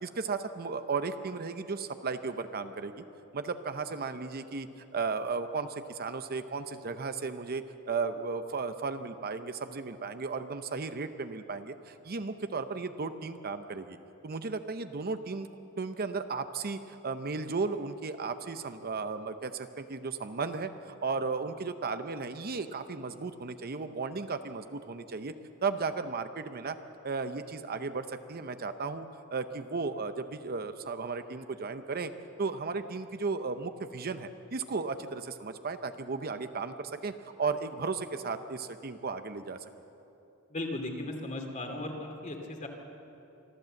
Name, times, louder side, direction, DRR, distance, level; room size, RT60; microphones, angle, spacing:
voice 1, 0.0-2.9 3.3-4.7 4.9-14.0 14.2-15.5 15.8-25.3 25.6-26.8 27.0-32.1 32.4-37.1 37.4-39.6, right 4 dB, 45° right, 9 dB, 0.7 m, -35 dB
voice 2, 40.5-42.7, left 1 dB, 35° left, 3 dB, 2.4 m, -36 dB
25.0 x 13.5 x 7.7 m, 2.9 s
head